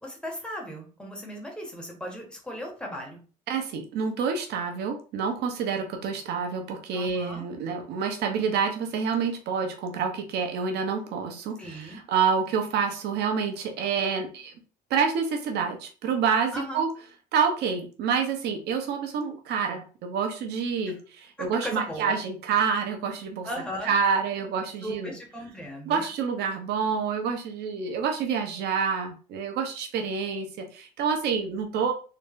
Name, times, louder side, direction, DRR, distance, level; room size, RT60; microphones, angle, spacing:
voice 1, 0.0-3.2 6.9-7.4 11.6-12.0 16.5-16.8 20.9-21.0 21.4-22.2 23.4-23.9 24.8-26.1, equal, 5° left, 0 dB, 1.2 m, -37 dB
voice 2, 3.5-14.5 14.9-16.9 17.3-23.5 23.8-25.2 25.9-31.9, right 6 dB, 80° right, 4 dB, 0.9 m, -28 dB
3.9 x 2.1 x 3.6 m, 0.37 s
cardioid pair, 110°, 17 cm